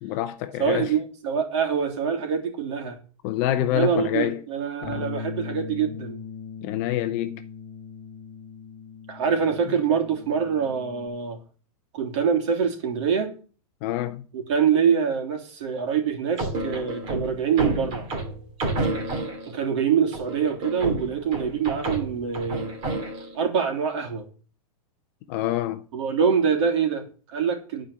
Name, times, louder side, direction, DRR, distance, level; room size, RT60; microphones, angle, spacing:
voice 1, 0.0-0.9 3.2-4.4 4.8-5.0 6.6-7.4 13.8-14.3 25.3-25.8, left 12 dB, 25° left, 0.5 m, -26 dB
voice 2, 0.6-3.0 3.7-6.2 9.1-11.4 11.9-13.3 14.3-18.1 19.4-22.7 23.3-24.3 25.9-27.9, right 7 dB, 50° right, 3.2 m, -25 dB
Bass guitar, 4.8-11.1, left 5 dB, 10° left, 2.4 m, -39 dB
sound 1, 16.4-19.6 20.1-23.4, right 2 dB, 25° right, 2.4 m, -30 dB
11.0 x 5.0 x 8.5 m
supercardioid pair, 175°, 19 cm